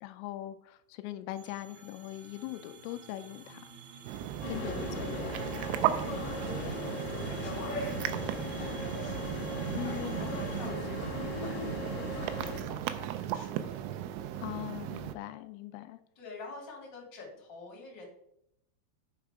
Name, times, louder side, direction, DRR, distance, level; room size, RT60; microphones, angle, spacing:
voice 1, 0.0-3.6 4.5-5.1 9.7-10.3 14.4-16.0, left 15 dB, 85° left, 10 dB, 3.1 m, -41 dB
sound 1, 1.4-10.7, right 7 dB, 70° right, 3.0 m, -49 dB
sound 2, 4.1-15.2, right 11 dB, 90° right, 3.2 m, -36 dB
sound 3, 4.4-12.6, left 2 dB, 60° left, 1.5 m, -38 dB
voice 2, 6.2-11.6 12.1-14.1 16.2-18.0, left 3 dB, 30° left, -1 dB, 2.3 m, -49 dB
8.8 x 5.8 x 4.8 m, 0.75 s
omnidirectional pair, 5.7 m